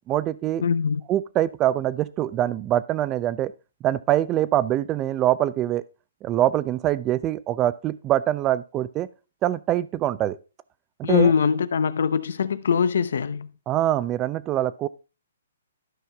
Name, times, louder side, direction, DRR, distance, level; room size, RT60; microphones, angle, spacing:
voice 1, 0.1-0.6 1.1-3.5 3.8-5.8 6.2-9.1 9.4-10.4 11.0-11.3 13.7-14.9, right 13 dB, 25° right, 0.5 m, -24 dB
voice 2, 0.6-1.0 11.0-13.5, left 6 dB, 70° left, 0.7 m, -22 dB
12.5 x 5.7 x 3.4 m
hypercardioid pair, 145°, 0 cm